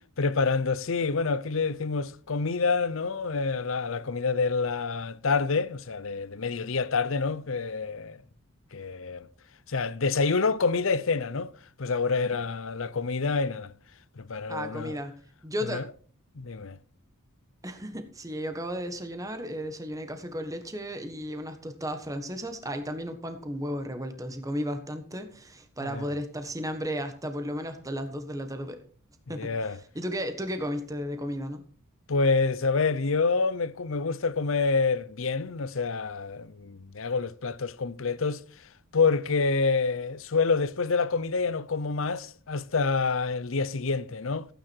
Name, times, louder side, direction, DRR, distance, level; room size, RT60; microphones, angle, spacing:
voice 1, 0.2-8.2 8.7-9.3 9.7-11.5 11.8-13.7 14.2-15.0 15.6-15.9 16.3-16.8 25.8-26.1 29.3-29.8 32.1-38.4 38.9-44.5, left 4 dB, 65° left, 0.7 m, -27 dB
voice 2, 14.5-15.1 15.4-15.8 17.6-28.8 29.3-31.6, equal, 15° right, 1.4 m, -34 dB
15.0 x 9.4 x 4.5 m
head